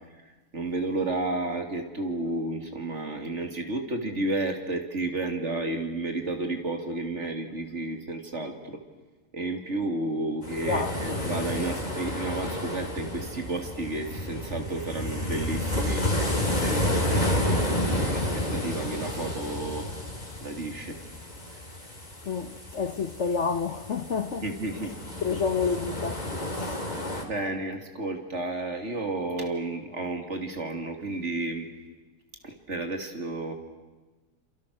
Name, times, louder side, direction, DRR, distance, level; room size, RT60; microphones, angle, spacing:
voice 1, 0.5-8.8 9.3-19.9 20.4-21.0 24.4-24.9 27.2-31.7 32.4-33.5, right 2 dB, 50° right, 3.0 m, -32 dB
sound 1, 10.4-27.2, left 1 dB, 25° left, 3.3 m, -31 dB
voice 2, 22.3-24.5 25.2-26.9, left 5 dB, 55° left, 1.2 m, -29 dB
29.0 x 27.5 x 6.6 m
omnidirectional pair, 1.6 m